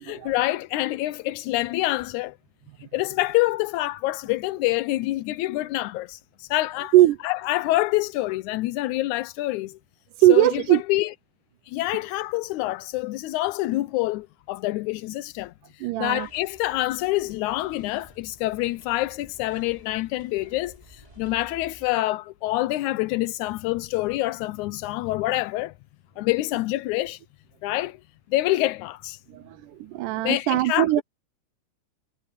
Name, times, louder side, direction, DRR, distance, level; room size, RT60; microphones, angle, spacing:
voice 1, 0.0-2.3 2.9-6.9 7.2-9.8 10.3-11.1 11.7-25.7 26.2-27.2 27.6-28.0 28.3-29.2 30.2-31.0, left 18 dB, 80° left, 1.8 m, -26 dB
voice 2, 10.2-10.8 15.8-16.3 29.3-31.0, right 15 dB, 80° right, 2.0 m, -20 dB
sound 1, 16.0-22.0, equal, 10° right, 7.0 m, -53 dB
omnidirectional pair, 3.9 m